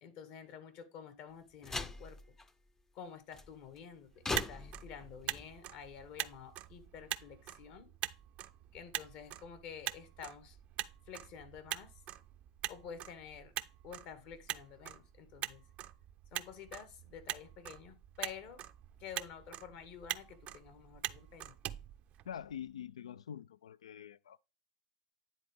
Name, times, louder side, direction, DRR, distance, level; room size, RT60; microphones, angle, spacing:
voice 1, 0.0-2.3 2.9-7.9 8.7-10.6 11.1-11.9 12.7-13.5 13.8-15.6 16.3-18.6 19.0-21.5, left 7 dB, 55° left, 1.5 m, -50 dB
sound 1, 1.6-2.5 3.3-3.8 4.2-5.5, left 3 dB, 15° left, 0.6 m, -41 dB
Motor vehicle (road), 4.1-22.7, right 13 dB, 45° right, 0.5 m, -44 dB
voice 2, 22.2-24.4, left 9 dB, 85° left, 0.3 m, -45 dB
9.9 x 3.9 x 3.3 m
hypercardioid pair, 95°, 3 cm